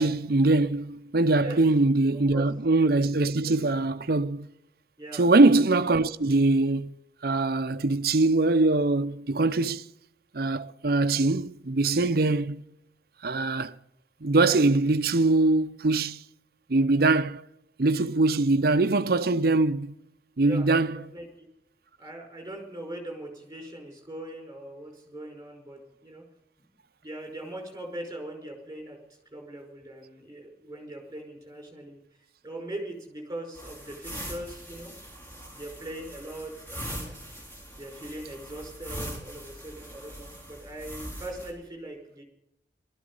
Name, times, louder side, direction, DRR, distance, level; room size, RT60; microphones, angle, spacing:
voice 1, 0.0-4.5 5.1-7.0 7.2-9.8 10.3-12.6 13.2-13.7 14.2-16.2 16.7-17.4 17.8-20.0 20.4-21.1, right 2 dB, 60° right, 0.7 m, -23 dB
voice 2, 21.1-21.5 22.0-26.2 27.0-29.0 29.3-32.0 32.4-34.9 35.5-37.1 37.8-42.2, right 1 dB, 20° right, 5.3 m, -40 dB
sound 1, 33.5-41.5, equal, 10° left, 4.5 m, -41 dB
18.0 x 13.5 x 5.4 m
head